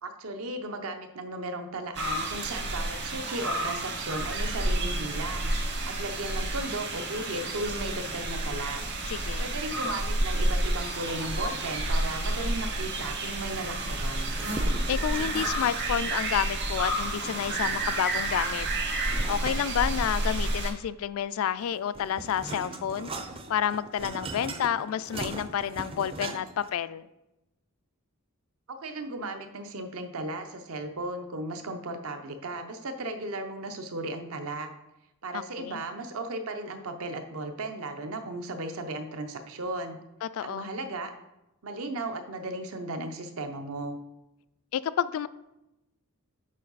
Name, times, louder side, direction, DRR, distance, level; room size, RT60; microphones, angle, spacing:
voice 1, 0.0-5.5 5.9-8.8 9.4-14.3 28.7-34.7 35.2-40.0 40.4-41.1 41.6-44.0, right 2 dB, 70° right, 6 dB, 0.7 m, -36 dB
sound 1, 1.9-20.7, right 1 dB, 50° right, 1.1 m, -30 dB
voice 2, 9.1-9.5 14.9-18.7 19.3-23.1 23.5-27.0 35.3-35.8 40.2-40.7 44.7-45.3, left 9 dB, 70° left, 16 dB, 0.3 m, -30 dB
sound 2, 14.3-15.6 17.1-18.0 19.1-20.5 21.6-26.7, right 2 dB, 25° right, 0.5 m, -40 dB
7.4 x 4.6 x 4.0 m, 0.93 s
head